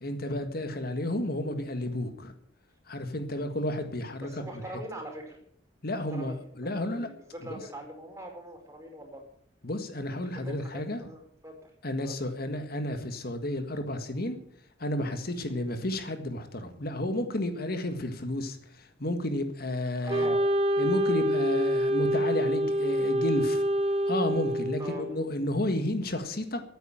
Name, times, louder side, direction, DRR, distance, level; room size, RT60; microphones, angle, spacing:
voice 1, 0.0-2.3 2.9-4.6 5.8-7.1 7.4-7.6 9.6-11.0 11.8-14.4 14.8-20.4 20.8-23.6 24.1-26.6, left 1 dB, 55° left, 8 dB, 1.8 m, -32 dB
voice 2, 4.2-5.4 5.9-9.2 10.3-11.7 12.0-12.1 20.0-20.5 24.8-25.1, right 1 dB, 15° right, 2 dB, 4.9 m, -43 dB
Wind instrument woodwind instrument, 20.1-25.2, equal, 35° right, 1.4 m, -26 dB
14.5 x 9.5 x 8.8 m, 0.66 s
head